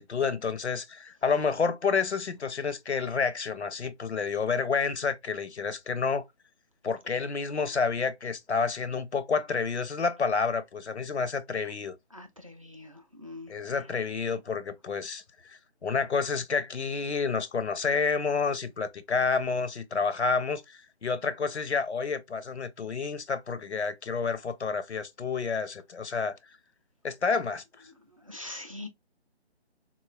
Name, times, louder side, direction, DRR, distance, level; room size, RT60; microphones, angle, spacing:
voice 1, 0.0-6.3 6.8-11.9 13.5-15.2 15.5-26.4 27.0-27.6, left 5 dB, 85° left, 0.6 m, -29 dB
voice 2, 12.1-13.5 28.1-28.9, left 2 dB, 35° right, 0.4 m, -43 dB
3.8 x 2.3 x 2.2 m
figure-of-eight pair, 150°, 33 cm